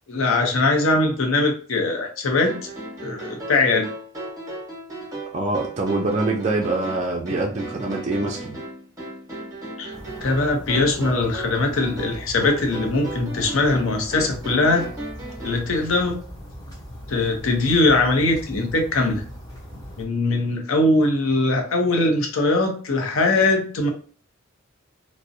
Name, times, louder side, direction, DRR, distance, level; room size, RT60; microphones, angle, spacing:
voice 1, 0.1-2.7 3.0-3.9 9.8-9.9 10.2-14.8 15.4-16.2 17.1-19.2 20.0-23.9, left 2 dB, 75° left, 3 dB, 0.6 m, -21 dB
sound 1, 2.4-15.7, right 2 dB, 15° right, 0.8 m, -35 dB
voice 2, 5.3-8.6, right 2 dB, 35° right, 0 dB, 0.3 m, -24 dB
sound 2, 9.9-20.0, equal, 15° left, 0.7 m, -39 dB
2.5 x 2.0 x 2.6 m, 0.43 s
head